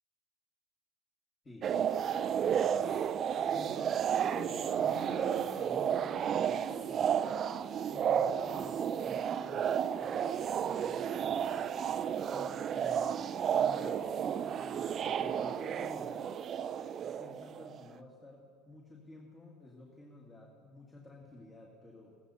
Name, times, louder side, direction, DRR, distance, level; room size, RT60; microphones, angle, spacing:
sound 1, 1.6-17.8, right 8 dB, 40° right, 0.4 m, -32 dB
voice 1, 2.5-3.0 3.5-7.5 7.9-11.3 12.3-13.2 13.5-16.3 17.0-22.2, left 2 dB, 20° left, -2 dB, 1.9 m, -51 dB
15.0 x 14.5 x 4.2 m, 2.1 s
hypercardioid pair, 95°, 0 cm